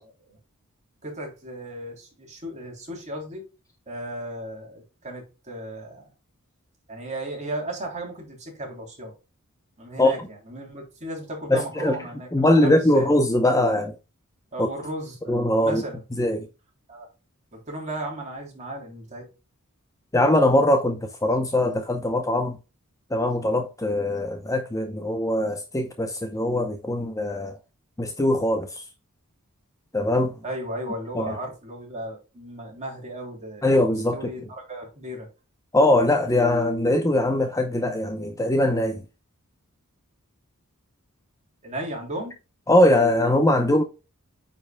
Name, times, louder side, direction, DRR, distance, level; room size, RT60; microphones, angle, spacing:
voice 1, 0.0-0.4 1.0-3.4 3.9-6.0 6.9-9.1 9.8-13.1 14.5-16.0 16.9-17.1 17.5-19.2 30.4-33.8 34.1-35.3 41.6-42.3, right 1 dB, 30° right, 3.2 m, -35 dB
voice 2, 11.5-12.0 12.3-14.0 14.6-14.7 15.3-15.8 16.1-16.5 20.1-22.6 23.1-27.6 28.0-28.8 29.9-30.4 31.2-31.4 33.6-34.3 35.7-39.0 42.7-43.8, left 1 dB, 15° left, 0.7 m, -21 dB
9.3 x 5.3 x 2.2 m
head